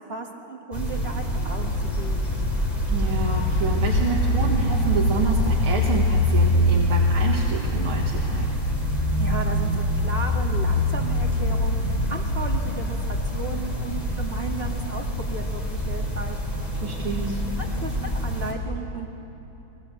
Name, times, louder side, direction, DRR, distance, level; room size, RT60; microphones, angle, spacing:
voice 1, 0.1-2.4 9.2-16.4 17.0-19.1, right 3 dB, 30° right, 0 dB, 2.2 m, -35 dB
sound 1, 0.7-18.5, left 1 dB, 20° left, 4.1 m, -24 dB
voice 2, 2.9-8.5 16.8-17.4, right 4 dB, 90° right, -2 dB, 2.7 m, -29 dB
29.5 x 23.5 x 7.7 m, 3.0 s
omnidirectional pair, 2.2 m